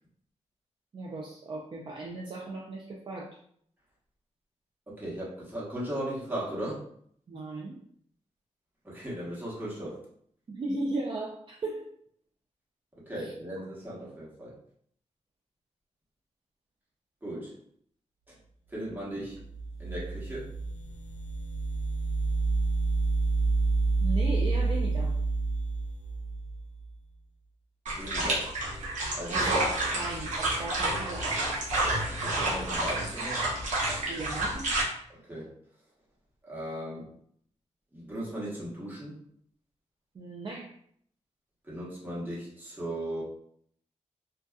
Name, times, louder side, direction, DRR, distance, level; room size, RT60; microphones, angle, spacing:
voice 1, 0.9-3.3 7.3-7.7 10.5-11.9 13.2-13.3 24.0-25.2 29.3-31.7 34.1-34.7 40.1-40.7, right 2 dB, 40° right, -1 dB, 0.4 m, -36 dB
voice 2, 4.9-6.8 8.8-10.0 13.0-14.5 17.2-17.6 18.3-18.4 18.7-19.4 19.8-20.5 28.0-28.6 29.1-29.5 32.1-33.4 35.1-35.5 36.4-37.1 37.9-39.2 41.6-43.2, right 1 dB, 15° right, -6 dB, 1.0 m, -37 dB
sound 1, 19.3-26.9, right 3 dB, 70° left, 0.4 m, -29 dB
sound 2, 27.9-34.8, right 2 dB, 90° right, 0.8 m, -29 dB
2.6 x 2.2 x 2.3 m, 0.65 s
wide cardioid pair, 110°, 12 cm